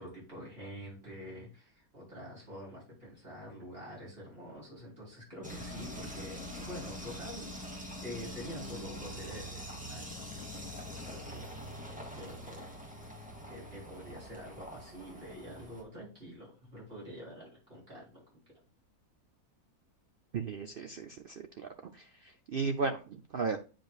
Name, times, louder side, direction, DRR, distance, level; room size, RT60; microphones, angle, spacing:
voice 1, 0.0-18.2, equal, 40° right, -5 dB, 4.2 m, -47 dB
sound 1, 5.4-15.8, equal, 5° right, 1.3 m, -44 dB
voice 2, 20.3-21.7 22.5-23.6, right 4 dB, 70° right, 6 dB, 0.5 m, -34 dB
9.2 x 5.1 x 2.4 m, 0.34 s
omnidirectional pair, 1.6 m